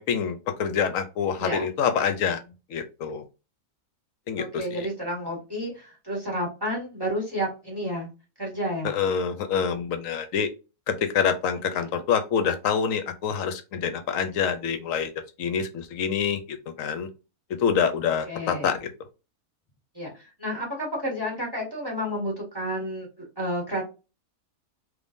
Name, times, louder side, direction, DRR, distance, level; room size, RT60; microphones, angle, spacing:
voice 1, 0.0-2.4 2.7-3.2 4.3-4.9 8.8-10.5 10.9-15.1 15.4-17.1 17.6-18.9, left 7 dB, 70° left, 8 dB, 0.9 m, -26 dB
voice 2, 4.4-8.1 8.4-8.9 11.7-11.9 18.3-18.7 19.9-23.8, equal, 15° right, -1 dB, 1.5 m, -31 dB
3.6 x 3.1 x 2.5 m, 0.30 s
omnidirectional pair, 1.6 m